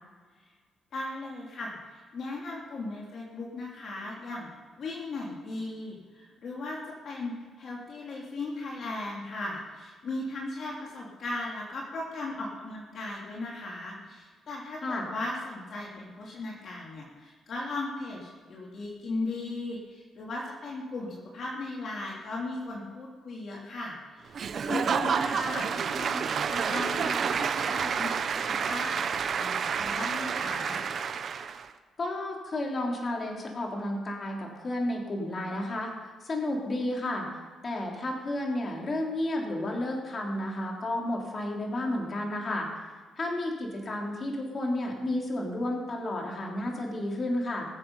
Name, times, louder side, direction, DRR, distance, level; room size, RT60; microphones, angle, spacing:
voice 1, 0.9-4.5 4.8-24.3 24.6-26.2 26.5-28.9 29.4-30.8, left 2 dB, 60° left, -3 dB, 3.0 m, -37 dB
Applause / Crowd, 24.3-31.7, right 6 dB, 55° right, 0.9 m, -29 dB
voice 2, 32.0-37.3 37.6-42.8 43.2-47.7, left 1 dB, 40° left, -1 dB, 3.6 m, -32 dB
21.5 x 7.9 x 5.6 m, 1.5 s
cardioid pair, 90°, 0 cm